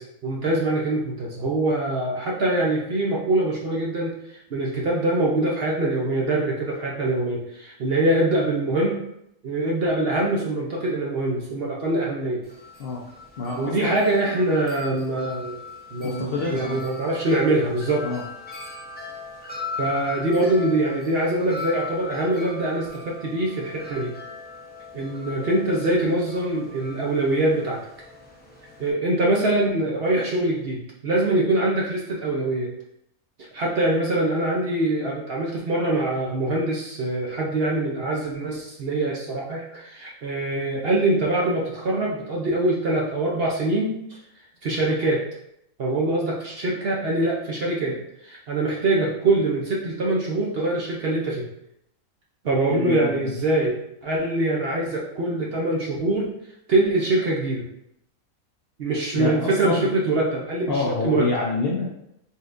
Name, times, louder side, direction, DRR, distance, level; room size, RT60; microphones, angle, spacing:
voice 1, 0.0-9.0 9.4-12.4 13.6-15.6 15.9-18.0 19.8-24.1 24.9-27.8 28.8-32.7 33.5-44.0 44.6-45.2 45.8-48.0 48.2-51.5 52.4-56.3 56.7-57.6 58.8-61.3, right 2 dB, 55° right, -3 dB, 0.8 m, -24 dB
Wind chime, 12.4-28.9, left 4 dB, 15° left, 0.4 m, -39 dB
voice 2, 13.4-14.0 16.0-16.8 18.0-18.2 52.7-53.3 59.1-59.9 60.7-61.9, left 3 dB, 60° left, -2 dB, 0.6 m, -27 dB
4.2 x 3.6 x 2.5 m, 0.79 s
omnidirectional pair, 1.5 m